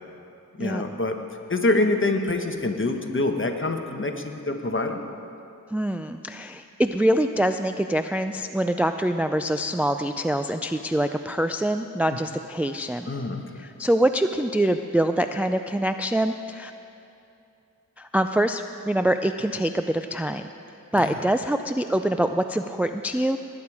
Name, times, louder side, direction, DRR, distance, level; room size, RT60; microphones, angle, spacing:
voice 1, 0.6-1.2 1.5-5.0 13.1-13.4 21.0-21.2, left 2 dB, 35° left, 4 dB, 1.1 m, -25 dB
voice 2, 5.7-13.1 13.6-16.7 18.0-20.4 20.9-23.4, right 1 dB, 5° right, 8 dB, 0.3 m, -24 dB
19.0 x 8.8 x 4.8 m, 2.7 s
wide cardioid pair, 50°, 34 cm